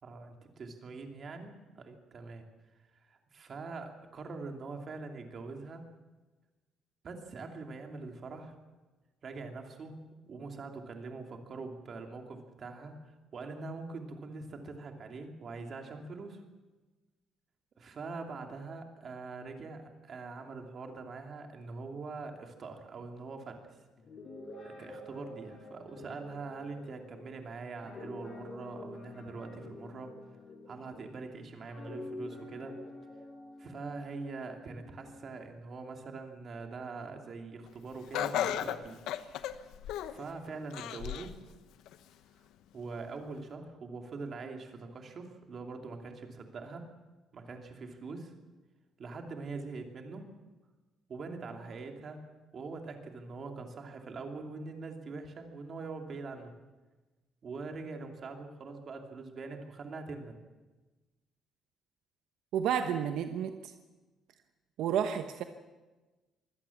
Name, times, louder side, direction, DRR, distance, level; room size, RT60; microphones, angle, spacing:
voice 1, 0.0-2.5 3.0-5.8 7.0-8.6 9.2-10.0 10.2-12.9 13.3-16.4 17.8-23.6 24.6-30.1 30.7-32.7 33.6-39.0 40.1-41.3 42.7-46.9 47.3-48.3 49.0-50.3 51.1-52.2 52.5-56.5 57.4-60.3, right 3 dB, 35° right, 4 dB, 2.8 m, -43 dB
Guitar, 24.0-31.2 31.6-35.3, left 2 dB, 40° left, 7.2 m, -48 dB
Laughter, 38.1-40.3 40.7-41.4 41.9-42.0 42.9-43.0, left 11 dB, 90° left, 1.0 m, -34 dB
voice 2, 62.5-63.7 64.8-65.4, right 9 dB, 75° right, 7 dB, 1.1 m, -31 dB
24.0 x 17.0 x 7.3 m, 1.2 s
cardioid pair, 155°, 0 cm